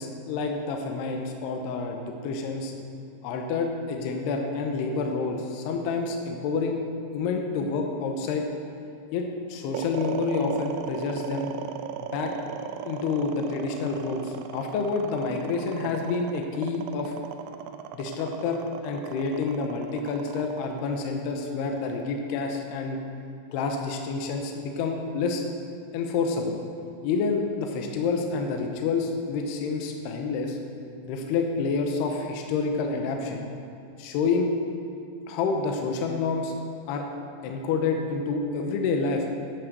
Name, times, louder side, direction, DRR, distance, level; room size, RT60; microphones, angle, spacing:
voice 1, 0.0-2.7 3.2-6.8 7.1-8.5 9.1-11.5 12.0-12.3 12.9-17.2 17.9-23.0 23.5-25.4 25.9-26.6 27.0-30.6 31.1-33.5 34.0-34.5 35.3-36.5 36.9-37.1 37.4-39.3, left 4 dB, 75° left, 3 dB, 2.7 m, -28 dB
sound 1, 9.7-22.0, right 9 dB, 85° right, 2.3 m, -37 dB
10.5 x 9.9 x 6.7 m, 2.7 s
omnidirectional pair, 5.3 m